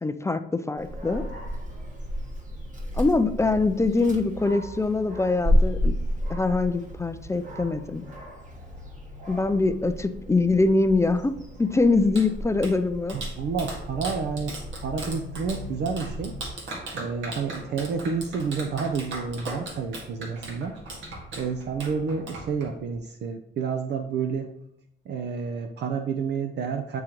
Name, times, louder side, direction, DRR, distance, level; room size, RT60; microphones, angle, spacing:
voice 1, 0.0-1.2 2.9-5.9 6.3-8.0 9.3-13.2, left 3 dB, 15° left, 10 dB, 0.4 m, -23 dB
Dog, 0.8-16.5, equal, 40° right, 1.5 m, -32 dB
Clapping, 11.8-23.0, right 2 dB, 75° right, 1.7 m, -39 dB
voice 2, 13.1-16.4 16.9-20.8 21.4-24.5 25.1-27.0, right 5 dB, 60° right, 5 dB, 0.5 m, -30 dB
9.0 x 3.7 x 2.9 m, 0.78 s
cardioid pair, 90°, 20 cm